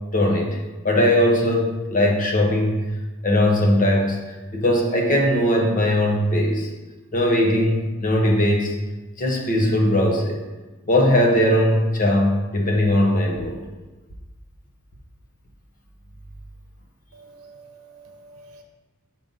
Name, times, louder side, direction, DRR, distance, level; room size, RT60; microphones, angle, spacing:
voice 1, 0.1-0.6 0.8-2.9 3.2-4.2 4.5-6.7 7.1-8.7 9.2-10.4 10.9-13.6, left 1 dB, 40° left, 0 dB, 1.0 m, -19 dB
voice 2, 17.1-18.6, right 3 dB, 80° right, 3 dB, 0.9 m, -47 dB
5.7 x 3.9 x 5.4 m, 1.2 s
head